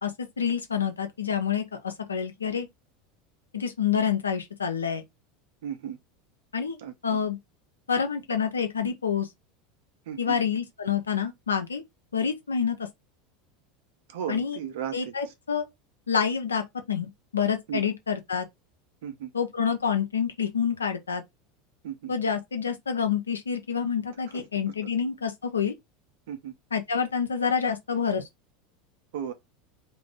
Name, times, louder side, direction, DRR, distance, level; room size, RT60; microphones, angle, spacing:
voice 1, 0.0-2.7 3.5-5.0 6.5-6.8 7.0-7.4 7.9-9.3 10.2-11.8 12.1-12.8 14.3-14.6 14.9-15.7 16.1-18.5 19.3-21.2 22.1-25.7 26.7-28.2, left 7 dB, 80° left, 0.6 m, -27 dB
voice 2, 5.6-6.0 6.8-7.2 10.1-10.3 14.1-15.3 17.7-17.8 19.0-19.3 21.8-22.1 24.3-24.5 26.3-26.5 29.1-29.3, right 9 dB, 65° right, 0.7 m, -35 dB
2.5 x 2.2 x 3.3 m
figure-of-eight pair, 80°, 0 cm